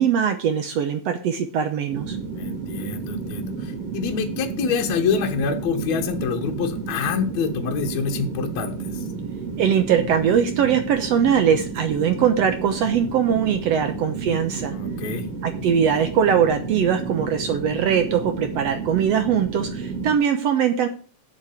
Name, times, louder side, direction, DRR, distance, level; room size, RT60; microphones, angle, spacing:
voice 1, 0.0-2.2 9.6-14.7 15.4-20.9, right 8 dB, 65° right, 8 dB, 1.7 m, -21 dB
sound 1, 1.9-20.1, right 4 dB, 50° right, 2.9 m, -32 dB
voice 2, 2.4-9.1 14.7-15.3, left 6 dB, 65° left, 4 dB, 2.4 m, -26 dB
7.7 x 7.4 x 8.4 m, 0.40 s
omnidirectional pair, 3.6 m